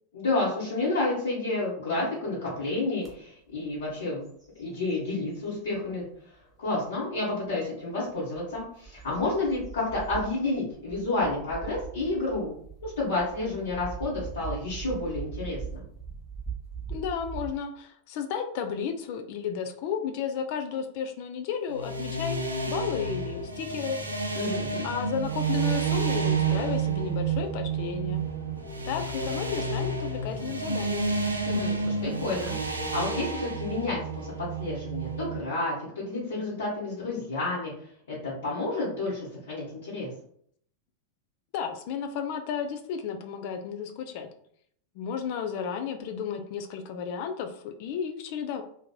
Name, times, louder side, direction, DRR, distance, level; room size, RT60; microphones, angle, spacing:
voice 1, 0.1-4.2 4.6-6.0 6.6-12.5 12.8-15.8 24.3-24.8 31.4-34.3 34.6-40.1, left 2 dB, 65° left, -9 dB, 1.1 m, -30 dB
sound 1, 3.0-3.1 3.6-3.9 4.2-5.7 6.3-6.4 8.1-17.5, right 6 dB, ahead, 1.0 m, -41 dB
voice 2, 16.9-22.4 22.7-24.0 24.8-28.2 28.9-31.1 41.5-44.3 45.0-48.6, left 7 dB, 45° left, 6 dB, 0.3 m, -33 dB
sound 2, 21.7-35.4, right 4 dB, 80° right, 0.4 m, -30 dB
sound 3, 22.9-33.0, left 2 dB, 20° left, 1.5 m, -47 dB
2.8 x 2.5 x 2.2 m, 0.65 s
figure-of-eight pair, 90°, 0 cm